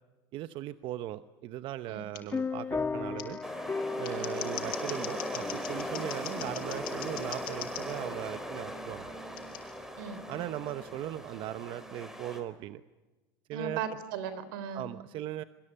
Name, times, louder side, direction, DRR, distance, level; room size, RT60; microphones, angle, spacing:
voice 1, 0.3-3.4 4.0-9.1 10.3-12.8 13.5-13.8 14.7-15.4, right 13 dB, 50° right, 12 dB, 0.9 m, -38 dB
Scissors, 2.1-2.2 3.2-3.3 3.9-7.8 9.4-9.6, left 15 dB, 85° left, 5.8 m, -41 dB
sound 1, 2.3-10.4, left 4 dB, 15° left, 1.3 m, -38 dB
sound 2, 3.4-12.4, equal, 5° right, 4.1 m, -39 dB
voice 2, 10.0-10.5 13.5-14.8, right 7 dB, 85° right, 13 dB, 3.9 m, -38 dB
26.5 x 24.0 x 8.8 m, 1.2 s
supercardioid pair, 130°, 11 cm